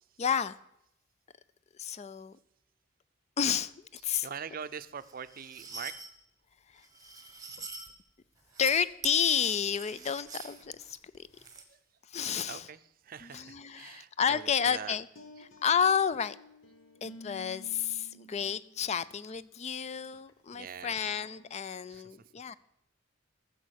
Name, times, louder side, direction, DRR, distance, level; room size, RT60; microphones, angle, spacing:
voice 1, 0.2-0.6 1.8-2.4 3.4-4.3 6.7-6.9 8.6-11.3 12.1-12.6 13.2-15.1 15.6-16.4 17.0-22.5, left 7 dB, 35° left, 0.4 m, -31 dB
voice 2, 4.0-6.0 8.5-8.9 9.8-9.9 11.7-11.8 12.5-15.0 15.4-15.5 20.5-21.2 21.9-22.2, right 7 dB, 50° right, 0.5 m, -44 dB
sound 1, 5.0-6.1 6.8-7.9 8.4-8.7 9.0-11.6, right 5 dB, 20° right, 1.3 m, -45 dB
sound 2, 15.2-18.8 19.3-19.5 20.0-20.3 21.1-21.4, left 2 dB, 85° left, 1.3 m, -52 dB
14.0 x 7.0 x 6.4 m
head